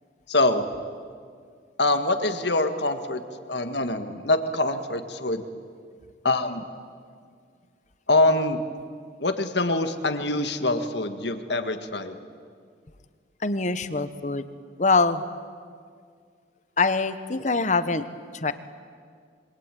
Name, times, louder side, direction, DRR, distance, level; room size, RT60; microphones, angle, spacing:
voice 1, 0.3-0.7 1.8-3.2 3.5-5.5 6.2-6.6 8.1-8.6 9.2-12.2, left 2 dB, 65° left, 8 dB, 1.9 m, -24 dB
voice 2, 13.4-14.5 14.8-15.2 16.8-18.0 18.4-18.5, left 3 dB, 40° left, 12 dB, 1.2 m, -23 dB
26.5 x 24.0 x 9.3 m, 2.1 s
head